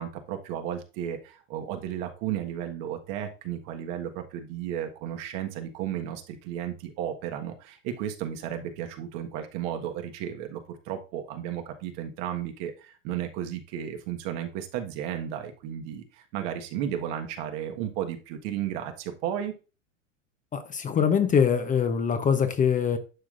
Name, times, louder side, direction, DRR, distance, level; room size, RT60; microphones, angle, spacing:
voice 1, 0.0-19.5, right 10 dB, 50° right, 1.5 m, -34 dB
voice 2, 20.5-23.0, left 7 dB, 20° left, 0.8 m, -23 dB
11.0 x 6.1 x 2.5 m
hypercardioid pair, 100°, 38 cm